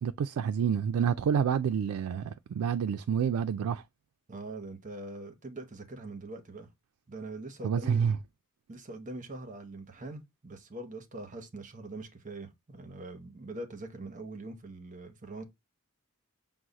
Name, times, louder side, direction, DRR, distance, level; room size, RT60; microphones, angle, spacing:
voice 1, 0.0-3.8 7.6-8.2, right 7 dB, 90° right, 0.3 m, -28 dB
voice 2, 4.3-6.7 7.1-8.0 8.7-15.4, right 2 dB, 35° right, 0.7 m, -43 dB
6.1 x 2.0 x 3.9 m
head